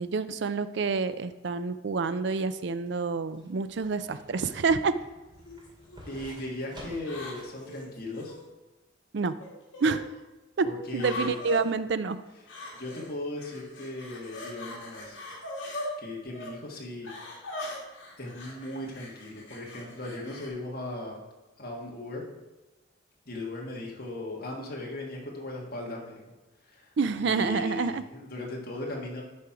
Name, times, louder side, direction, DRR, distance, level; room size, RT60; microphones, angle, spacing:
voice 1, 0.0-5.0 9.1-9.4 9.8-10.1 10.6-12.2 27.0-28.0, right 4 dB, 60° right, 13 dB, 0.4 m, -28 dB
sound 1, 2.6-7.6 8.0-8.1, equal, 25° right, 2.4 m, -50 dB
sound 2, 4.4-4.7 5.5-6.0 7.0-8.4 9.4-10.0 11.0-11.6 12.5-13.1 13.4-15.9 16.3-16.5 17.0-20.5, left 1 dB, 75° left, 2.1 m, -41 dB
voice 2, 6.1-8.3 10.6-11.3 12.7-15.2 16.0-17.1 18.2-21.2 21.6-22.2 23.2-26.2 26.7-26.9 27.2-29.2, left 1 dB, 50° left, -2 dB, 1.7 m, -37 dB
10.5 x 4.4 x 4.9 m, 1.1 s
head